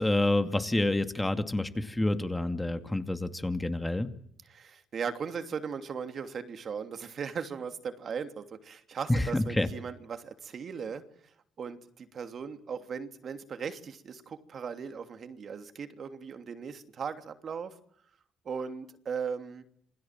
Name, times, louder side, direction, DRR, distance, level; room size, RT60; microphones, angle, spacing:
voice 1, 0.0-4.1 9.1-9.7, left 2 dB, 10° left, 8 dB, 2.3 m, -28 dB
voice 2, 4.5-11.0 11.6-17.7 18.4-19.6, right 6 dB, 55° right, 8 dB, 2.9 m, -38 dB
28.0 x 21.5 x 7.6 m, 0.67 s
cardioid pair, 90°, 0 cm